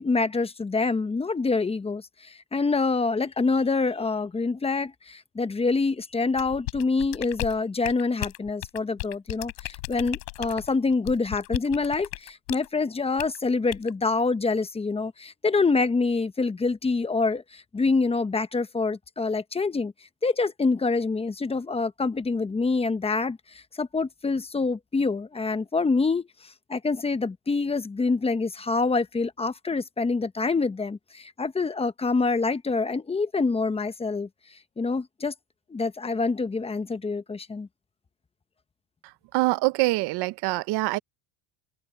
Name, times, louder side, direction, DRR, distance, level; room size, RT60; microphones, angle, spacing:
voice 1, 0.0-19.9 20.2-34.3 34.8-35.3 35.7-37.7, left 4 dB, 10° left, 0.9 m, -26 dB
sound 1, 6.4-12.7 13.2-13.4 13.7-13.9, left 29 dB, 80° left, 6.9 m, -35 dB
voice 2, 39.3-41.0, right 20 dB, 55° right, 0.9 m, -24 dB
open air
supercardioid pair, 120°, 47 cm